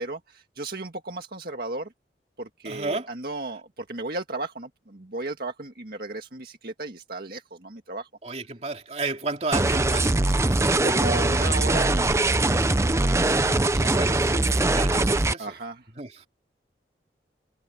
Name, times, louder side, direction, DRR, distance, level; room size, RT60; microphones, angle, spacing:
voice 1, 0.0-1.9 2.4-8.1 9.7-9.8 10.8-14.0 15.4-15.8, right 2 dB, 55° right, 1.9 m, -35 dB
voice 2, 2.6-3.1 8.2-10.7 13.7-15.6 16.0-16.3, right 3 dB, 40° right, 3.0 m, -33 dB
sound 1, 9.5-15.3, right 2 dB, 15° right, 0.6 m, -22 dB
head